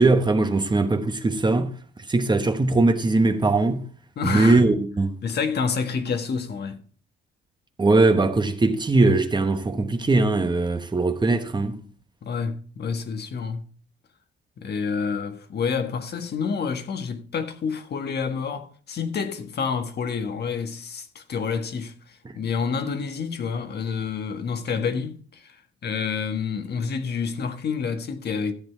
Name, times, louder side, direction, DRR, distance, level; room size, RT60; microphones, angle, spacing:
voice 1, 0.0-1.7 2.1-3.8 4.2-5.2 7.8-11.8 22.2-22.3, right 3 dB, 20° right, 1.2 m, -20 dB
voice 2, 4.2-4.6 5.2-6.8 12.2-13.7 14.6-28.5, left 5 dB, 55° left, 1.6 m, -28 dB
13.5 x 7.9 x 4.6 m
cardioid pair, 90°, 20 cm